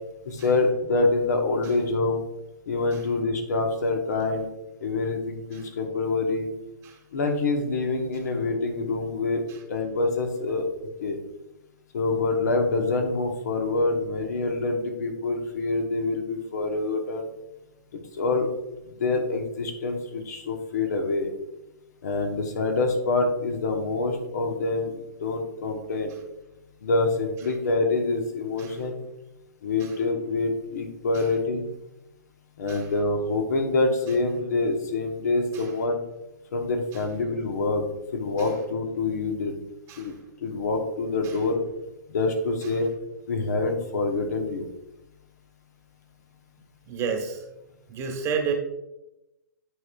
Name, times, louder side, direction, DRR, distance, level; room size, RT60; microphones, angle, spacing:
voice 1, 0.2-2.2 2.7-4.5 4.8-6.5 7.1-9.4 9.7-10.7 11.0-11.2 11.9-17.3 18.1-18.5 18.8-21.3 22.0-26.1 26.8-29.0 29.6-31.7 32.6-36.0 36.5-37.8 38.1-39.5 40.0-40.1 40.4-41.6 42.1-42.9 43.3-44.7, left 3 dB, 65° left, 3 dB, 1.3 m, -26 dB
voice 2, 46.9-47.4 47.9-48.5, right 6 dB, 25° right, 2 dB, 1.3 m, -31 dB
9.9 x 4.7 x 2.4 m, 0.92 s
hypercardioid pair, 120°, 10 cm